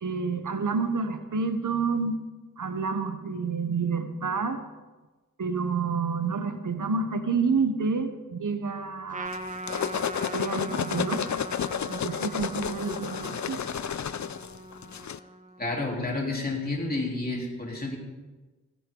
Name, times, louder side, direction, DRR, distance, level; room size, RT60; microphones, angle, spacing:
voice 1, 0.0-2.2 2.6-4.6 5.4-9.3 10.3-11.3 11.9-13.7, right 4 dB, 80° right, 9 dB, 1.1 m, -29 dB
Trumpet, 9.1-15.8, right 2 dB, 25° right, 1.4 m, -41 dB
sound 1, 9.3-15.2, left 8 dB, 65° left, 0.6 m, -31 dB
voice 2, 15.6-18.0, left 2 dB, 30° left, -2 dB, 3.7 m, -30 dB
17.0 x 15.0 x 3.9 m, 1.2 s
wide cardioid pair, 75°, 31 cm